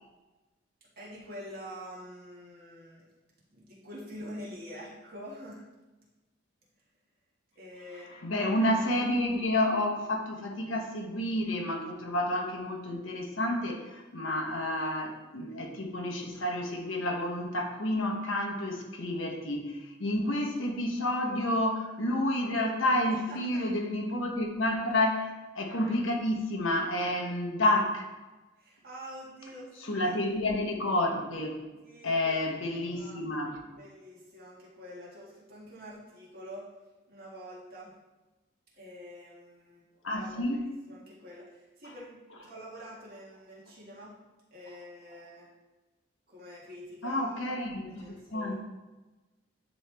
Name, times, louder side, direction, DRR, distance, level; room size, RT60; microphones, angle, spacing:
voice 1, 0.8-3.0 3.5-5.7 7.5-8.4 23.3-23.6 28.6-30.3 31.8-32.3 32.9-33.2 33.8-36.7 37.1-37.9 38.7-39.8 40.2-44.1 44.5-45.5 46.3-47.5 47.8-48.5, equal, 50° right, -6 dB, 1.8 m, -46 dB
voice 2, 8.2-28.1 29.9-31.6 32.0-33.6 40.0-40.6 47.0-48.5, left 1 dB, 80° left, 2 dB, 1.0 m, -30 dB
9.5 x 3.2 x 3.4 m, 1.1 s
head